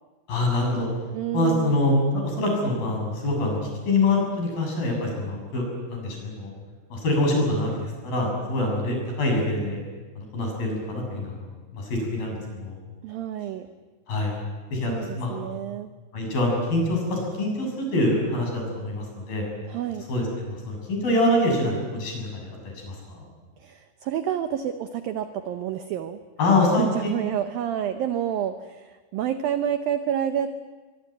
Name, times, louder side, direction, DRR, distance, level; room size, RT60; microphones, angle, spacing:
voice 1, 0.3-0.9 1.3-3.6 3.9-6.5 6.9-9.8 10.2-12.8 14.1-14.3 14.7-15.4 16.1-19.4 20.1-23.3 26.4-26.8, left 2 dB, 50° left, 1 dB, 9.1 m, -25 dB
voice 2, 1.1-1.8 13.0-13.7 14.9-15.9 19.7-20.1 23.6-26.2 26.8-30.5, right 10 dB, 80° right, 9 dB, 2.1 m, -29 dB
24.5 x 24.0 x 9.2 m, 1.3 s
omnidirectional pair, 5.4 m